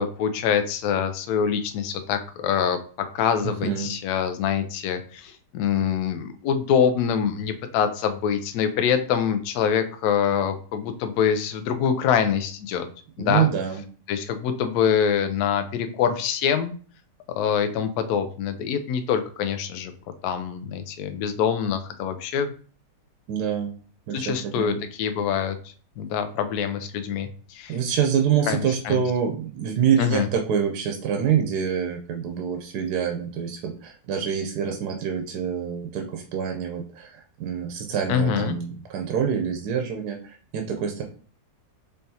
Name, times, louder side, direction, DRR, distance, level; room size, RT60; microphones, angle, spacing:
voice 1, 0.0-12.9 13.2-13.5 14.1-16.7 17.4-19.9 20.2-22.5 24.1-25.6 26.0-27.8 28.5-29.0 30.0-30.3 38.1-38.6, left 7 dB, 70° left, 8 dB, 1.0 m, -25 dB
voice 2, 3.4-3.9 13.2-13.8 23.3-23.7 24.1-24.8 27.7-41.0, right 8 dB, 70° right, 3 dB, 1.1 m, -26 dB
4.5 x 3.4 x 2.7 m, 0.42 s
omnidirectional pair, 1.8 m